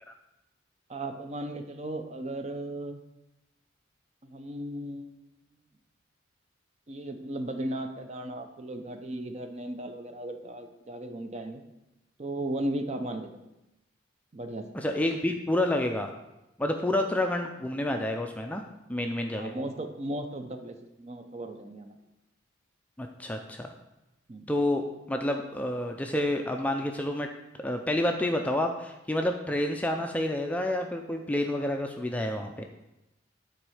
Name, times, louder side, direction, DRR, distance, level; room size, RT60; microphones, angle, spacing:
voice 1, 0.9-3.0 4.2-5.3 6.9-11.6 12.2-13.4 14.3-14.7 19.3-22.0 24.3-24.4, right 1 dB, 35° right, 7 dB, 0.6 m, -36 dB
voice 2, 14.7-16.1 16.6-18.6 18.9-19.5 23.0-23.7 24.5-27.3 27.6-32.6, left 1 dB, 5° left, 3 dB, 0.4 m, -29 dB
9.1 x 4.3 x 4.8 m, 0.94 s
head